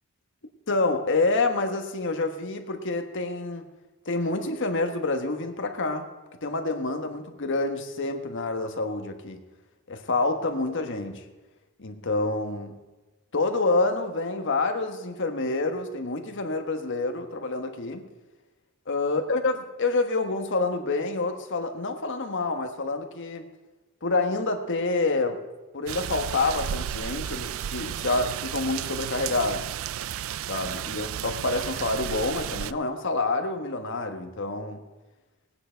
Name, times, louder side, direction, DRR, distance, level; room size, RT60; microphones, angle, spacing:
voice 1, 0.7-3.6 4.0-6.1 6.4-9.4 9.9-11.2 11.8-12.7 13.3-18.1 18.9-23.4 24.0-25.4 25.7-29.6 30.5-34.8, left 3 dB, 60° left, 6 dB, 1.4 m, -27 dB
sound 1, 25.9-32.7, right 10 dB, 65° right, 0.4 m, -33 dB
18.0 x 9.6 x 4.6 m, 1.2 s
head